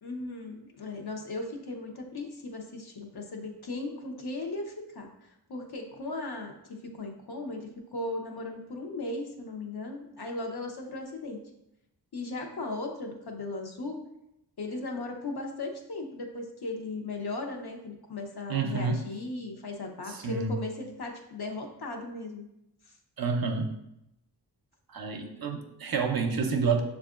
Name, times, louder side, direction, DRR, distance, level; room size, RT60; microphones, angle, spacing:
voice 1, 0.0-5.1 5.5-6.5 7.0-11.4 12.1-14.0 14.6-22.5, left 2 dB, 60° left, 2 dB, 0.8 m, -37 dB
voice 2, 18.5-19.0 20.1-20.5 23.2-23.7 24.9-26.8, right 5 dB, 55° right, 4 dB, 0.6 m, -29 dB
6.4 x 2.4 x 2.4 m, 0.83 s
cardioid pair, 50°, 42 cm